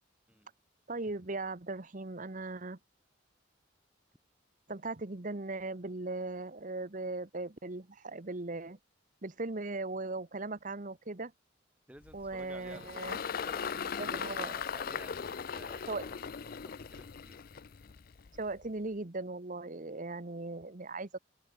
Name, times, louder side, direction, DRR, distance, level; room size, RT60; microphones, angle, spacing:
voice 1, 0.9-2.8 4.7-8.8 9.2-11.3 12.1-13.2 14.0-14.5 15.9-16.0 18.4-21.2, right 2 dB, 40° right, 1.2 m, -38 dB
voice 2, 11.9-17.4, right 1 dB, 5° right, 2.7 m, -54 dB
Engine, 12.0-18.6, left 7 dB, 50° left, 0.5 m, -39 dB
head